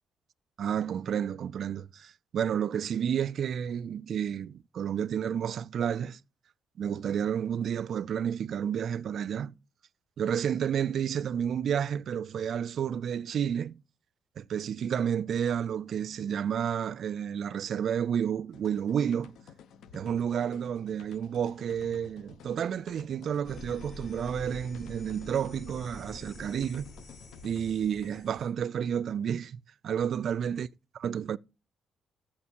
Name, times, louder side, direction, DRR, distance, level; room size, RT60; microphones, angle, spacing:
voice 1, 0.6-6.2 6.8-9.5 10.2-13.8 14.4-19.3 19.9-26.9 27.4-30.7 31.0-31.4, right 8 dB, 60° right, 0.3 m, -31 dB
sound 1, 18.5-28.3, left 8 dB, 80° left, 0.8 m, -52 dB
sound 2, 23.4-28.5, left 2 dB, 55° left, 4.2 m, -47 dB
13.5 x 4.9 x 2.9 m
cardioid pair, 90°, 0 cm